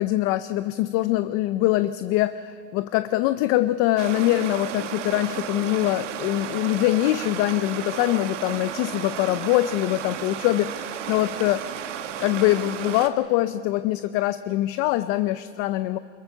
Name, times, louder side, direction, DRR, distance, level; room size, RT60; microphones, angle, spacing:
voice 1, 0.0-11.6 12.2-16.0, left 16 dB, 40° left, 13 dB, 0.6 m, -23 dB
Stream, 4.0-13.1, right 9 dB, 80° right, 1.7 m, -33 dB
24.5 x 22.0 x 6.8 m, 2.2 s
supercardioid pair, 130°, 36 cm